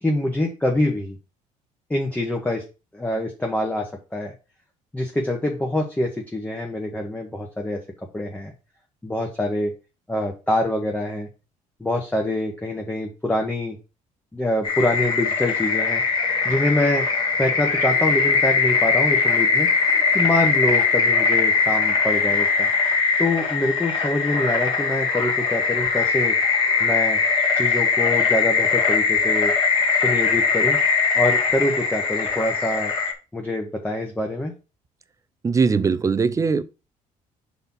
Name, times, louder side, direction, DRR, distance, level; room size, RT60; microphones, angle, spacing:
voice 1, 0.0-1.2 1.9-2.6 2.9-4.3 4.9-7.8 8.1-8.5 9.0-9.7 10.1-11.3 11.8-13.8 14.3-16.0 16.4-17.1 17.4-19.7 20.1-22.7 23.2-26.3 26.8-27.2 27.5-29.5 29.9-30.8 31.1-32.9 33.3-34.5, left 1 dB, 10° left, 1.2 m, -25 dB
sound 1, 14.6-33.1, left 5 dB, 35° left, 2.0 m, -21 dB
voice 2, 35.4-36.6, right 5 dB, 25° right, 0.5 m, -20 dB
5.6 x 4.2 x 5.4 m
cardioid pair, 125°, 14 cm